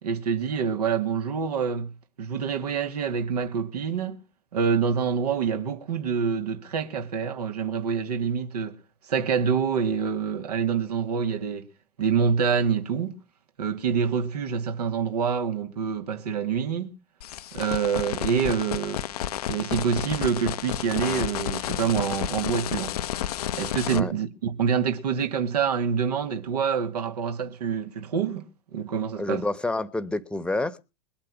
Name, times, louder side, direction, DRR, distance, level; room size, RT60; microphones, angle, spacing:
voice 1, 0.0-4.2 4.5-8.8 9.1-11.7 12.0-13.2 13.6-17.0 17.5-19.0 19.5-23.0 23.5-29.4, right 6 dB, 70° right, 2.6 m, -26 dB
sound 1, 17.2-24.0, left 11 dB, 65° left, 0.9 m, -31 dB
voice 2, 29.2-30.8, left 2 dB, 5° left, 1.3 m, -28 dB
22.0 x 8.8 x 6.1 m
figure-of-eight pair, 85°, 21 cm